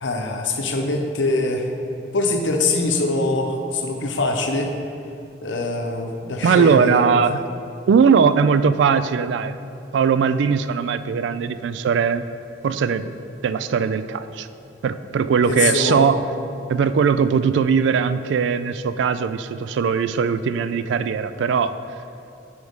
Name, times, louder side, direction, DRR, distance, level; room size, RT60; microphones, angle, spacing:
voice 1, 0.0-1.7 2.1-4.7 5.4-7.2 15.4-16.1, left 2 dB, 80° left, 3 dB, 0.8 m, -23 dB
voice 2, 6.4-7.4 7.9-9.5 9.9-12.2 12.6-13.1 13.4-14.5 14.8-16.2 16.7-21.7, right 6 dB, 80° right, 12 dB, 0.3 m, -19 dB
10.5 x 4.7 x 3.6 m, 2.7 s
head